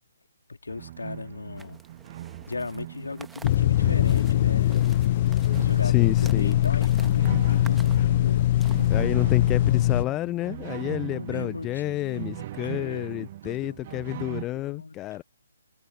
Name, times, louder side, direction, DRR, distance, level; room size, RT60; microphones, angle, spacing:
voice 1, 0.5-1.8 2.5-4.9 5.6-8.5 10.9-15.2, left 3 dB, 65° left, 3.4 m, -38 dB
sound 1, 0.7-14.5, right 13 dB, 35° right, 1.7 m, -40 dB
sound 2, 1.6-9.0, right 4 dB, 5° right, 1.8 m, -51 dB
sound 3, 3.4-10.0, left 13 dB, 35° left, 0.6 m, -22 dB
voice 2, 5.8-6.6 8.9-15.2, left 16 dB, 15° left, 1.1 m, -29 dB
figure-of-eight pair, 135°, 0 cm